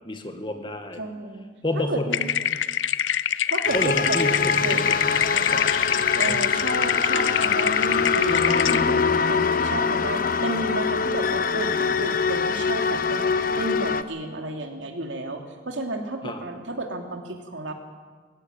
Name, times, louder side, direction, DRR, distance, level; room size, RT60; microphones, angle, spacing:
voice 1, 0.1-1.0 1.6-2.6 3.7-4.9 5.5-5.6 6.1-6.4 16.2-16.4, left 1 dB, 25° left, 6 dB, 1.9 m, -29 dB
voice 2, 1.0-1.5 1.7-2.0 3.5-5.7 6.2-17.7, right 2 dB, 90° right, 3 dB, 2.9 m, -32 dB
sound 1, 2.1-8.8, left 9 dB, 85° left, 0.7 m, -25 dB
sound 2, 3.7-14.0, left 5 dB, 50° left, 0.8 m, -24 dB
20.0 x 16.5 x 8.7 m, 1.5 s
head